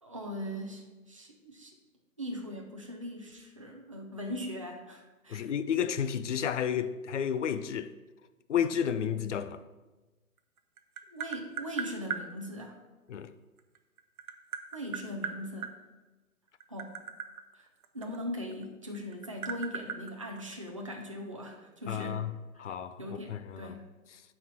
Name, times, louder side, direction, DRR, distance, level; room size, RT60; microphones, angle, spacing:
voice 1, 0.0-1.7 2.2-5.5 11.1-12.8 14.7-15.7 16.7-16.9 17.6-17.7 17.9-22.2 23.0-23.9, equal, 25° right, 0.5 m, -40 dB
voice 2, 5.3-7.9 8.5-9.6 13.1-13.3 21.9-23.8, left 8 dB, 55° left, 0.5 m, -32 dB
Tap, 10.4-12.3 13.6-15.7 16.5-18.6 18.9-20.9, right 6 dB, 70° right, 0.8 m, -38 dB
9.6 x 4.3 x 4.7 m
hypercardioid pair, 165°, 44 cm